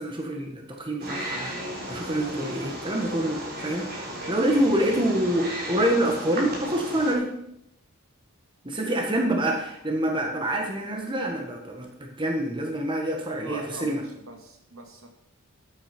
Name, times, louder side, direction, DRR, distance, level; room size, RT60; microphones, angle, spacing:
voice 1, 0.0-7.3 8.6-14.0, right 1 dB, 20° right, 2 dB, 1.6 m, -26 dB
Wild animals, 1.0-7.1, right 1 dB, 45° right, 3.6 m, -35 dB
voice 2, 4.2-4.7 9.3-9.4 13.3-15.1, right 2 dB, 65° right, 3 dB, 2.3 m, -42 dB
14.5 x 8.8 x 4.6 m, 0.79 s
head